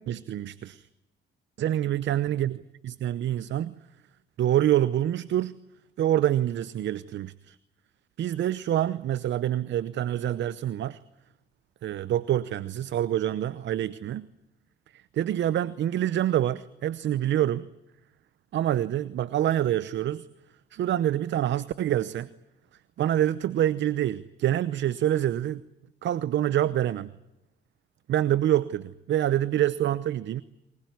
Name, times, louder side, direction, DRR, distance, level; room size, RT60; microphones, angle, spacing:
voice 1, 0.1-0.8 1.6-3.7 4.4-5.6 6.0-7.6 8.2-11.0 11.8-14.3 15.1-17.7 18.5-20.3 20.7-22.3 23.0-25.6 26.0-27.1 28.1-30.4, right 12 dB, 65° right, 17 dB, 0.9 m, -26 dB
23.5 x 21.0 x 9.6 m, 0.93 s
cardioid pair, 90°, 20 cm